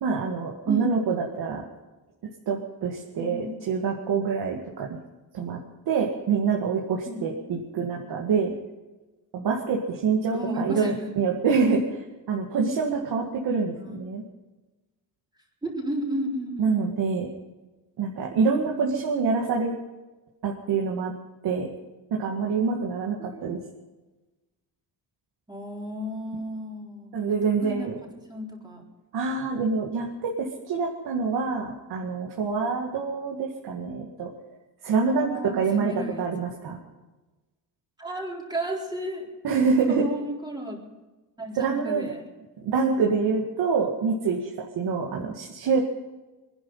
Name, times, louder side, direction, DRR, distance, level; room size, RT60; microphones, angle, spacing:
voice 1, 0.0-1.6 2.5-5.0 5.3-5.6 5.9-8.5 9.3-14.2 16.6-17.3 18.0-19.7 20.4-21.1 21.4-21.7 22.1-23.6 27.1-28.0 29.1-34.3 34.8-35.9 36.2-36.8 39.4-40.0 41.5-42.1 42.6-45.8, right 5 dB, 65° right, -1 dB, 2.2 m, -26 dB
voice 2, 3.2-3.5 7.1-7.2 10.3-11.1 13.8-14.0 15.6-16.9 23.3-23.6 25.5-27.9 28.3-28.8 35.1-36.2 38.0-39.3 39.9-40.8 41.4-42.2, right 1 dB, 10° right, -2 dB, 4.1 m, -33 dB
24.0 x 10.5 x 5.6 m, 1.1 s
cardioid pair, 140°, 41 cm